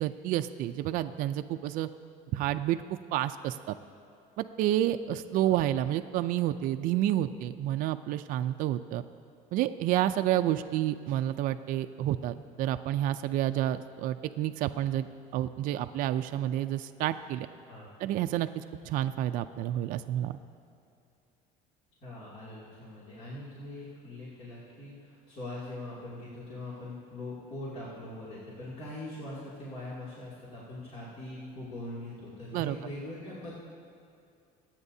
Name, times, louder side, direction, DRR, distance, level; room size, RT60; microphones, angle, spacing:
voice 1, 0.0-1.9 2.3-2.8 3.1-3.7 4.4-9.0 9.5-15.1 15.3-17.5 18.0-20.4 32.5-32.8, right 13 dB, 60° right, 9 dB, 0.4 m, -29 dB
voice 2, 22.0-33.5, left 1 dB, 45° left, -8 dB, 2.6 m, -42 dB
26.0 x 8.9 x 2.7 m, 2.5 s
cardioid pair, 135°, 16 cm